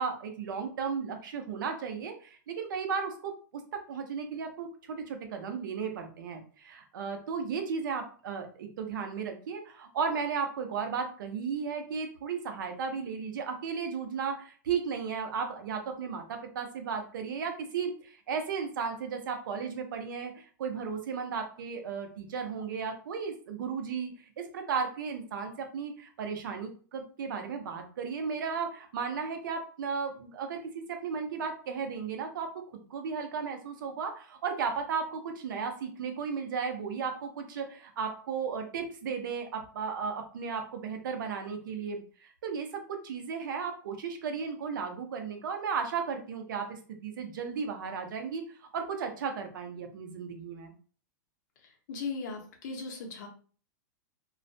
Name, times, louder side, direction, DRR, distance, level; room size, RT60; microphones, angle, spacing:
voice 1, 0.0-32.6 32.9-48.5 48.7-50.7, right 6 dB, 85° right, 5 dB, 0.6 m, -35 dB
voice 2, 51.6-53.3, left 4 dB, 65° left, 2 dB, 0.8 m, -38 dB
2.3 x 2.1 x 2.6 m, 0.40 s
supercardioid pair, 155°, 11 cm